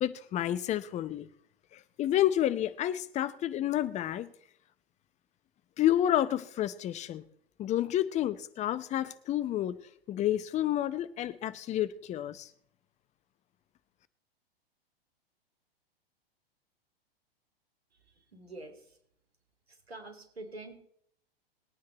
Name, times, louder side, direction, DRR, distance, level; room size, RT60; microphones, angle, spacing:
voice 1, 0.0-1.3 1.7-4.3 5.8-7.2 7.6-9.8 10.1-12.5, left 12 dB, 20° left, 15 dB, 0.8 m, -30 dB
voice 2, 18.3-19.0 19.7-20.7, right 2 dB, 85° right, 6 dB, 3.5 m, -46 dB
20.0 x 9.5 x 4.2 m, 0.68 s
figure-of-eight pair, 105°, 31 cm